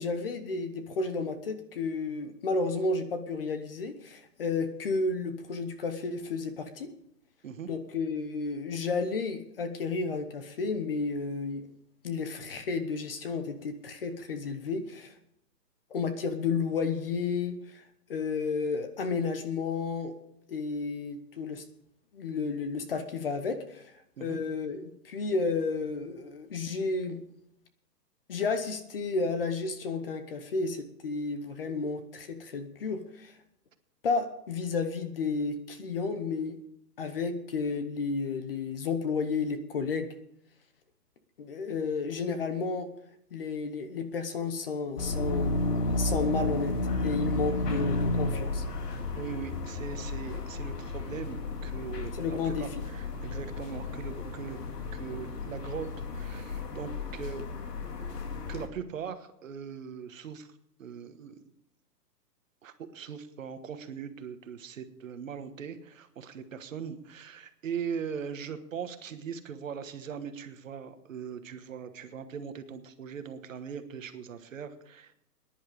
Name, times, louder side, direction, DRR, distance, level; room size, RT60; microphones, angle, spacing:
voice 1, 0.0-6.9 7.7-11.7 12.0-15.1 15.9-17.8 18.1-20.1 20.5-21.6 22.1-23.9 24.2-27.2 28.3-33.3 34.0-36.6 37.0-40.1 41.4-42.9 43.3-45.6 46.0-46.7 47.0-48.6 52.1-52.8, left 4 dB, 35° left, 9 dB, 1.0 m, -32 dB
sound 1, 45.0-58.7, left 2 dB, 70° left, 2.3 m, -33 dB
voice 2, 49.1-54.6 54.9-57.4 58.5-60.5 60.8-61.4 62.6-75.2, right 7 dB, 50° right, 9 dB, 1.3 m, -40 dB
15.5 x 10.5 x 5.1 m, 0.74 s
hypercardioid pair, 170°, 49 cm